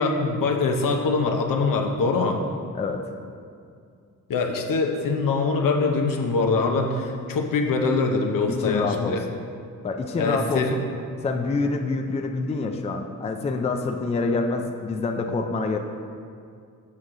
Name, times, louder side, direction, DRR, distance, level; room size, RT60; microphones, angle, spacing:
voice 1, 0.0-2.4 4.3-9.2 10.2-10.7, left 4 dB, 80° left, 3 dB, 0.8 m, -23 dB
voice 2, 2.7-3.1 8.5-9.2 9.8-10.8 11.2-15.8, left 3 dB, 20° left, 4 dB, 0.3 m, -26 dB
7.3 x 6.2 x 3.8 m, 2.3 s
wide cardioid pair, 160°, 33 cm